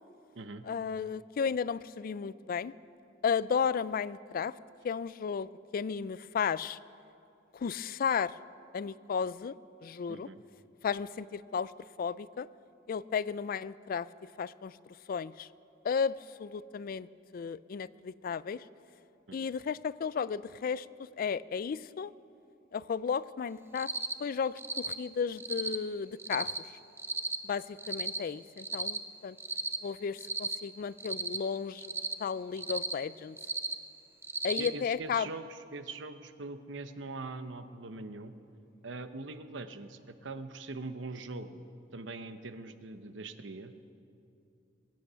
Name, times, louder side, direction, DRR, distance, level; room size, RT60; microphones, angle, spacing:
voice 1, 0.6-2.7 3.2-4.5 4.8-6.8 7.5-8.3 8.7-9.5 9.8-10.3 10.8-11.7 12.0-12.5 12.9-14.1 14.4-14.7 15.1-15.5 15.8-17.1 17.3-18.6 19.3-20.9 21.2-22.1 22.7-23.9 24.2-26.5 27.4-29.4 29.8-31.9 32.2-33.4 34.4-35.3, left 6 dB, 50° left, 18 dB, 0.3 m, -34 dB
voice 2, 10.1-10.4 19.3-19.5 34.6-38.3 38.8-41.7 41.9-43.7, right 3 dB, 85° right, 10 dB, 0.9 m, -42 dB
Cricket, 23.7-24.1 24.6-24.9 25.4-25.8 26.2-26.6 27.0-27.4 27.8-28.2 28.6-29.0 29.4-29.8 30.2-30.6 31.0-31.4 31.8-32.1 32.6-32.9 33.4-33.7 34.2-34.7, right 3 dB, 15° right, 0.6 m, -34 dB
23.5 x 8.5 x 6.9 m, 2.6 s
head